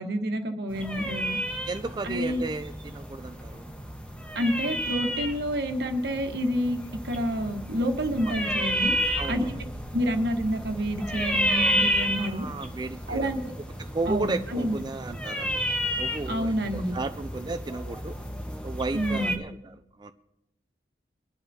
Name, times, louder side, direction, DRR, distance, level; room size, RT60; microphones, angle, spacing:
voice 1, 0.0-1.4 2.0-2.4 4.3-8.9 9.3-9.5 9.9-12.5 13.1-13.5 14.1-14.8 16.3-17.0 18.9-19.4, equal, 65° right, 5 dB, 1.3 m, -28 dB
sound 1, 0.7-19.4, equal, 5° left, 1.2 m, -31 dB
voice 2, 1.7-3.7 9.2-9.6 12.2-13.4 13.8-15.6 16.0-18.2 18.6-20.1, right 3 dB, 25° right, 9 dB, 0.4 m, -34 dB
23.0 x 11.0 x 2.8 m, 0.90 s
head